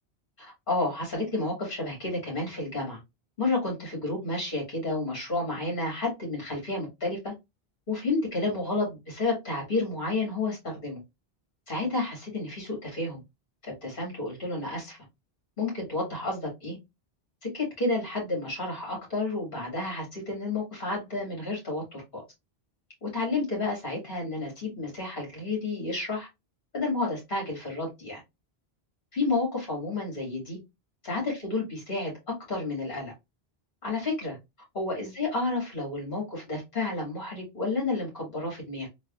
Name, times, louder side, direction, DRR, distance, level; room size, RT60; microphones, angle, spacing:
voice 1, 0.4-3.0 3.4-7.3 7.9-11.0 11.7-13.2 13.6-15.0 15.6-16.8 17.5-22.2 23.0-26.3 26.7-28.2 29.1-30.6 31.0-32.1 32.5-33.1 33.8-34.4 34.7-38.9, left 2 dB, 55° left, -1 dB, 2.4 m, -31 dB
4.0 x 3.2 x 2.4 m, 0.21 s
omnidirectional pair, 1.1 m